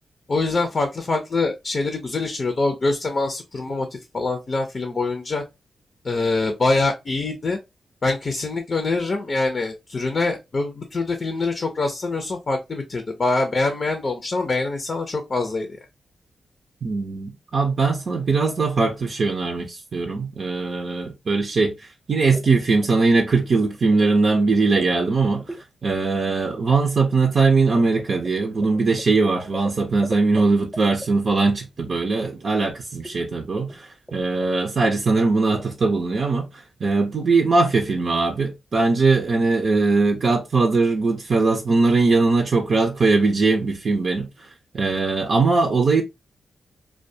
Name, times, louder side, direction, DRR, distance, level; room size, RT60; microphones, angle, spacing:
voice 1, 0.3-5.4 6.0-7.6 8.0-15.7, left 3 dB, 50° left, 0.5 m, -24 dB
voice 2, 16.8-25.4 25.8-36.5 36.8-44.3 44.7-46.0, right 3 dB, 60° right, 0.5 m, -20 dB
sound 1, 22.1-22.5 22.8-23.4 23.6-24.1 24.4-25.0 25.4-25.6 27.1-30.4 30.7-31.1 32.6-32.7 33.0-33.3 33.7-33.8 34.1-34.2 34.4-34.7 35.2-35.6, equal, ahead, 0.7 m, -37 dB
2.2 x 2.2 x 2.6 m
supercardioid pair, 50°, 0 cm